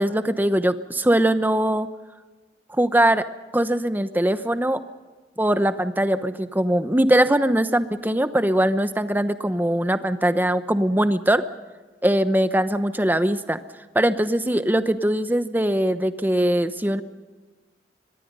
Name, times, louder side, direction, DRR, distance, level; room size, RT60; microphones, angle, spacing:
voice 1, 0.0-1.9 2.7-3.2 3.5-4.8 5.4-11.4 12.0-13.6 13.9-17.0, right 1 dB, 10° right, 11 dB, 0.9 m, -21 dB
24.0 x 21.5 x 5.5 m, 1.3 s
head